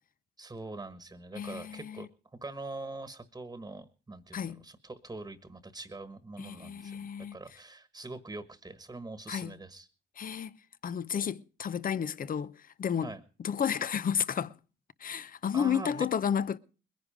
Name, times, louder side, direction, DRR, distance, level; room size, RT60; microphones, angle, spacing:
voice 1, 0.4-2.1 2.4-9.9 13.0-13.2 15.5-16.1, right 2 dB, 15° right, 1.4 m, -43 dB
voice 2, 1.3-2.1 4.3-4.6 6.4-7.4 9.3-9.5 10.2-10.6 10.8-13.1 13.4-14.5 15.0-16.6, left 8 dB, 45° left, 0.8 m, -32 dB
21.5 x 10.5 x 5.1 m
cardioid pair, 90°, 20 cm